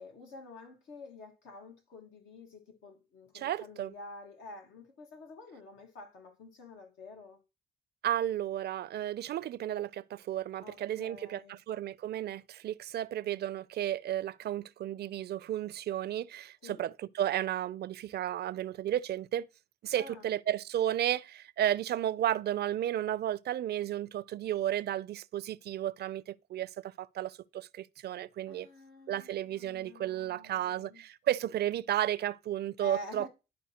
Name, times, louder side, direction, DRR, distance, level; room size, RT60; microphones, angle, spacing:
voice 1, 0.0-7.4 10.6-11.6 16.6-16.8 20.0-20.3 28.5-31.0 32.8-33.3, left 2 dB, 85° left, 1.6 m, -48 dB
voice 2, 3.3-3.9 8.0-19.5 19.8-28.7 29.1-33.3, right 12 dB, 55° right, 0.4 m, -33 dB
11.0 x 4.6 x 2.9 m
cardioid pair, 90°, 20 cm